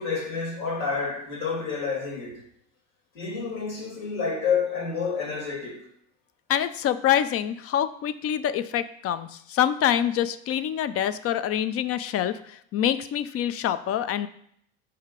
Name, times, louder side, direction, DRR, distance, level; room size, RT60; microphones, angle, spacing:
voice 1, 0.0-2.4 3.1-5.9, left 5 dB, 65° left, 2.0 m, -29 dB
voice 2, 6.5-14.3, left 10 dB, 40° left, 0.5 m, -26 dB
5.5 x 3.3 x 5.1 m
hypercardioid pair, 70°, 36 cm